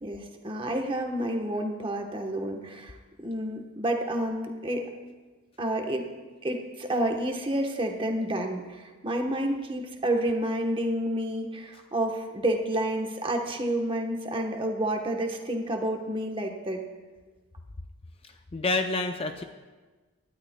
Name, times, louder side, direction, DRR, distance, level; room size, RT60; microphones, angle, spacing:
voice 1, 0.0-3.0 3.2-4.9 5.6-6.0 6.4-16.9, right 1 dB, 25° right, 3 dB, 1.0 m, -29 dB
voice 2, 18.2-19.4, left 3 dB, 25° left, 6 dB, 0.4 m, -29 dB
18.5 x 12.0 x 2.2 m, 1.3 s
head